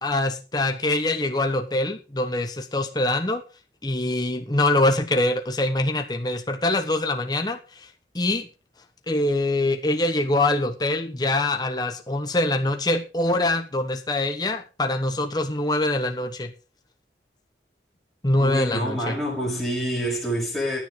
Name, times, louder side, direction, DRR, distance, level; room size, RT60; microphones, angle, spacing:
voice 1, 0.0-3.4 3.8-7.9 8.1-8.5 9.1-16.5 18.2-19.2, left 2 dB, 25° left, 1.2 m, -24 dB
voice 2, 18.4-20.8, equal, ahead, 6.9 m, -27 dB
16.5 x 9.9 x 3.9 m
head